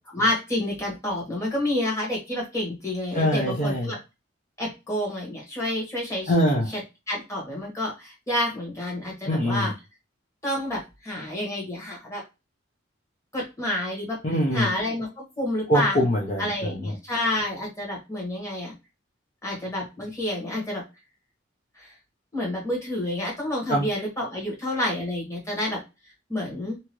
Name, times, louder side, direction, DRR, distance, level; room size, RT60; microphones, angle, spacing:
voice 1, 0.1-4.0 4.6-6.3 7.1-9.7 10.4-12.2 13.3-14.2 14.5-16.0 16.4-18.7 19.4-20.8 21.8-21.9 22.3-25.8 26.3-26.8, left 1 dB, 15° left, -3 dB, 1.2 m, -29 dB
voice 2, 3.1-3.9 6.3-6.7 9.3-9.7 14.2-14.7 15.7-16.9 23.7-23.9, equal, 40° left, -2 dB, 0.6 m, -23 dB
2.8 x 2.4 x 3.0 m, 0.26 s
head